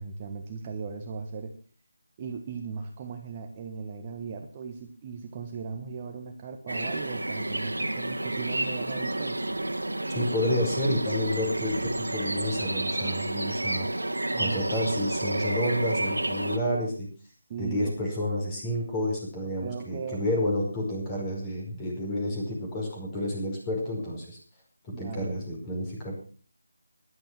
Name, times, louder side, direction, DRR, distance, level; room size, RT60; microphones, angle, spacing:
voice 1, 0.0-1.5 2.2-9.4 14.3-14.9 17.5-17.9 19.6-20.5 24.9-25.4, right 5 dB, 25° right, 3 dB, 1.3 m, -38 dB
sound 1, 6.7-16.6, right 1 dB, 75° right, 1.9 m, -30 dB
voice 2, 10.1-13.9 14.4-17.1 17.6-24.4 24.9-26.1, left 1 dB, 15° left, -1 dB, 5.0 m, -30 dB
15.0 x 11.5 x 5.9 m, 0.42 s
figure-of-eight pair, 160°, 0 cm